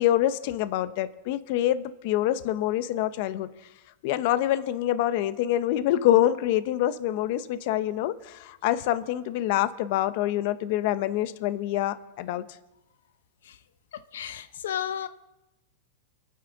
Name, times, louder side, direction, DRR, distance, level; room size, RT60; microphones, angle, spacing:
voice 1, 0.0-3.5 4.0-12.4, left 13 dB, 50° left, 13 dB, 0.7 m, -26 dB
voice 2, 14.1-15.1, left 9 dB, 85° left, 12 dB, 0.6 m, -32 dB
26.5 x 9.5 x 3.9 m, 0.97 s
supercardioid pair, 160°, 0 cm